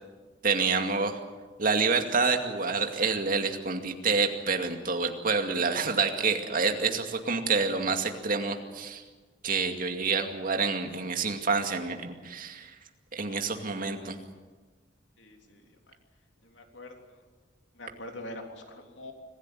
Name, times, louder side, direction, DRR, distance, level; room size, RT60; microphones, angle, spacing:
voice 1, 0.4-1.2 1.6-9.0 9.4-12.7 13.1-14.2, right 4 dB, 50° right, 5 dB, 2.3 m, -28 dB
voice 2, 15.2-16.0 16.4-17.2 17.7-19.1, left 1 dB, 75° left, 3 dB, 3.5 m, -44 dB
25.5 x 15.5 x 9.3 m, 1.4 s
head